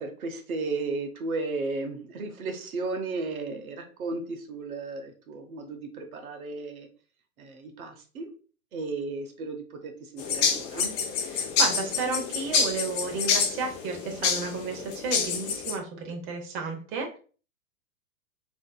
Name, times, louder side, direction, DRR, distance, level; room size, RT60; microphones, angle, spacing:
voice 1, 0.0-6.9 7.4-8.3 8.7-11.0, right 3 dB, 80° right, 5 dB, 0.8 m, -34 dB
sound 1, 10.2-15.8, left 5 dB, 25° left, 0.5 m, -28 dB
voice 2, 11.3-17.2, right 4 dB, 30° right, 2 dB, 0.7 m, -32 dB
3.6 x 2.7 x 2.2 m, 0.39 s
hypercardioid pair, 115°, 42 cm